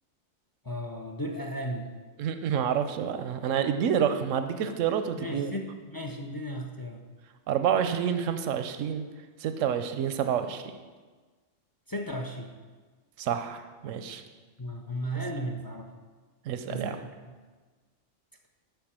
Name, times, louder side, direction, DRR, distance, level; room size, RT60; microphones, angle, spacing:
voice 1, 0.6-1.9 5.2-7.0 11.9-12.5 14.6-15.9 16.7-17.1, equal, 30° left, 4 dB, 0.4 m, -35 dB
voice 2, 2.2-5.5 7.5-9.0 9.4-10.7 13.2-14.2 16.5-17.0, right 8 dB, 90° right, 9 dB, 1.0 m, -28 dB
7.0 x 5.4 x 7.4 m, 1.4 s
omnidirectional pair, 1.3 m